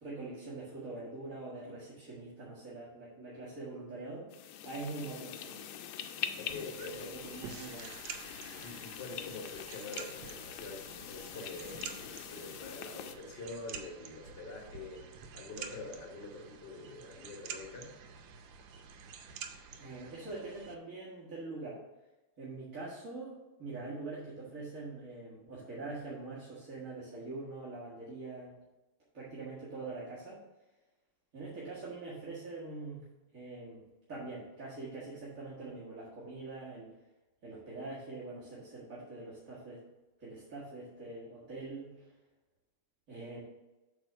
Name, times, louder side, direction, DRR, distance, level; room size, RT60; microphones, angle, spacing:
voice 1, 0.0-4.3 4.6-5.7 6.5-6.6 6.8-8.0 19.8-21.8 22.4-28.6 29.1-30.4 31.3-33.0 33.3-36.9 37.4-39.8 40.2-41.9 43.1-43.4, right 3 dB, 40° right, -10 dB, 2.0 m, -44 dB
sound 1, 4.3-13.2, left 9 dB, 80° left, 1.4 m, -44 dB
voice 2, 6.4-7.2 8.5-18.0, left 3 dB, 35° left, 1 dB, 1.2 m, -45 dB
sound 2, 6.5-20.7, right 7 dB, 90° right, 1.6 m, -49 dB
8.1 x 3.6 x 5.6 m, 1.1 s
omnidirectional pair, 2.3 m